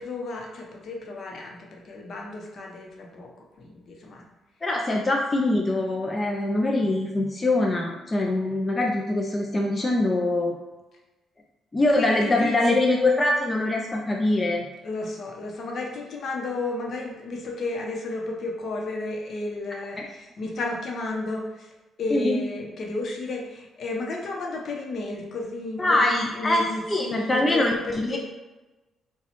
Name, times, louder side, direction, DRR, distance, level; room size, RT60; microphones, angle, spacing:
voice 1, 0.0-3.3 3.6-4.2 11.9-12.8 14.8-21.7 22.0-28.2, left 2 dB, 60° left, 0 dB, 0.8 m, -32 dB
voice 2, 4.6-10.6 11.7-14.7 22.1-22.4 25.8-28.2, left 2 dB, 25° left, 0 dB, 0.5 m, -23 dB
4.1 x 2.3 x 4.3 m, 1.1 s
cardioid pair, 90°, 0 cm